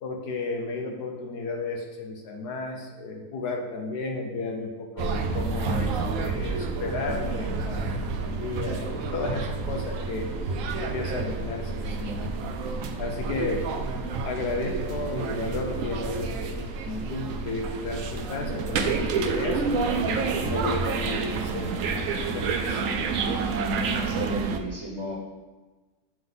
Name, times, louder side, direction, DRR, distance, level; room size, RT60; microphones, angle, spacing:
voice 1, 0.0-10.3 10.8-12.3 13.0-13.7 14.2-22.8, left 3 dB, 70° left, 2 dB, 1.3 m, -33 dB
sound 1, 5.0-24.6, right 4 dB, 75° right, 0.7 m, -29 dB
voice 2, 24.0-25.2, right 1 dB, 45° right, -4 dB, 1.4 m, -34 dB
7.7 x 3.7 x 3.8 m, 1.2 s
omnidirectional pair, 1.9 m